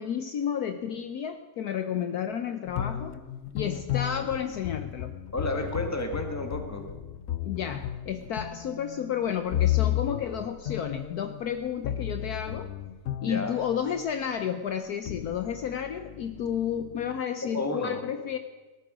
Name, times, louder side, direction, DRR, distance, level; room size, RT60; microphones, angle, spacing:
voice 1, 0.0-3.2 3.5-5.2 7.4-12.7 13.2-18.4, left 8 dB, 65° left, 8 dB, 1.2 m, -31 dB
sound 1, 2.7-14.1 14.8-17.2, left 12 dB, 85° left, 0.6 m, -33 dB
voice 2, 5.3-6.9 13.2-13.5 17.5-18.0, left 2 dB, 10° left, 4 dB, 1.5 m, -31 dB
18.0 x 13.0 x 5.0 m, 1.2 s
omnidirectional pair, 1.9 m